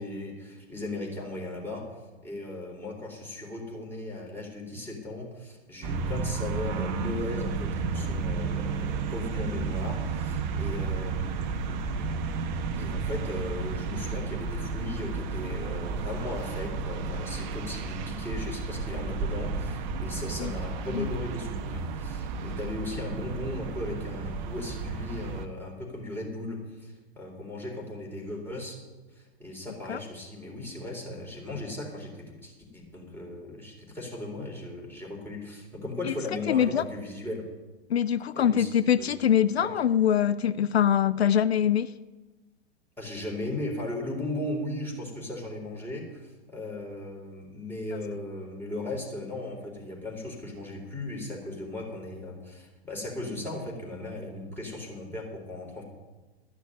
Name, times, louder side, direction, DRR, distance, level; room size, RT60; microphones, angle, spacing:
voice 1, 0.0-11.7 12.8-28.8 29.1-37.4 38.4-38.7 39.1-39.2 43.0-55.8, left 1 dB, 5° left, 3.9 m, -37 dB
sound 1, 5.8-25.5, right 4 dB, 45° right, 1.1 m, -32 dB
voice 2, 36.5-36.8 37.9-41.9, left 9 dB, 80° left, 0.5 m, -23 dB
13.0 x 6.3 x 9.7 m
figure-of-eight pair, 105°, 31 cm